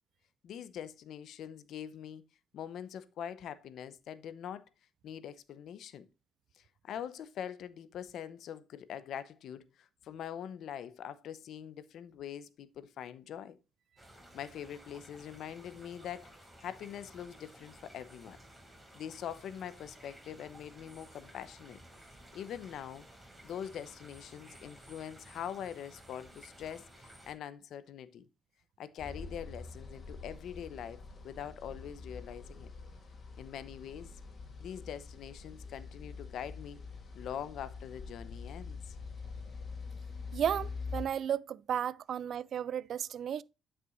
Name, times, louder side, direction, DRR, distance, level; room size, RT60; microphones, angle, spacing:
voice 1, 0.4-2.2 2.5-4.6 5.0-6.1 6.5-13.6 14.3-16.3 16.6-18.4 18.9-21.8 22.3-23.1 23.4-28.2 28.8-32.7 33.4-34.1 34.6-36.8 37.1-38.9, left 9 dB, 75° left, 0.8 m, -43 dB
sound 1, 14.0-27.3, right 1 dB, 10° right, 5.1 m, -55 dB
sound 2, 29.0-41.0, left 4 dB, 40° left, 2.9 m, -45 dB
voice 2, 40.3-43.4, right 9 dB, 65° right, 0.4 m, -34 dB
11.0 x 6.1 x 2.5 m
cardioid pair, 90°, 0 cm